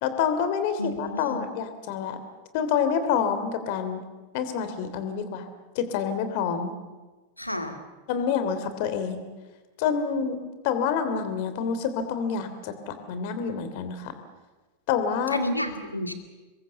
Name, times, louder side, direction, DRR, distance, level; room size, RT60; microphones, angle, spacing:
voice 1, 0.0-2.2 2.5-4.0 4.3-5.5 5.7-6.7 8.1-9.3 9.8-14.1 14.9-15.4, left 7 dB, 50° left, 10 dB, 3.0 m, -27 dB
voice 2, 0.8-1.5 7.4-7.8 15.3-16.1, left 1 dB, 85° left, 6 dB, 2.3 m, -31 dB
27.5 x 22.0 x 7.0 m, 1.2 s
figure-of-eight pair, 90°, 0 cm